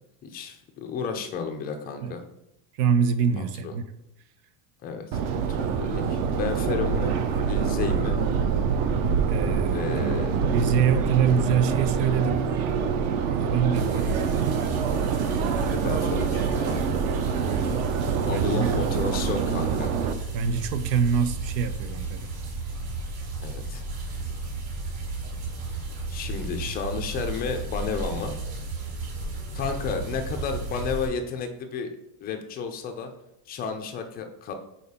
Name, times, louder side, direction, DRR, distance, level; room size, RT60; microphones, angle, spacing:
voice 1, 0.2-2.2 3.4-3.7 4.8-7.2 7.4-8.2 9.7-10.4 15.6-16.8 18.3-19.9 23.4-23.8 26.1-28.4 29.5-31.9 32.2-33.1 33.5-34.5, left 5 dB, 20° left, 0.4 m, -32 dB
voice 2, 2.8-3.9 9.3-10.2 10.5-12.5 13.2-14.7 18.3-18.8 20.3-22.3, right 7 dB, 90° right, 1.0 m, -25 dB
Subway metro underground, 5.1-20.1, right 6 dB, 40° right, 0.6 m, -26 dB
sound 1, 13.7-31.1, right 2 dB, 55° right, 3.0 m, -33 dB
6.7 x 4.4 x 5.4 m
cardioid pair, 175°, 47 cm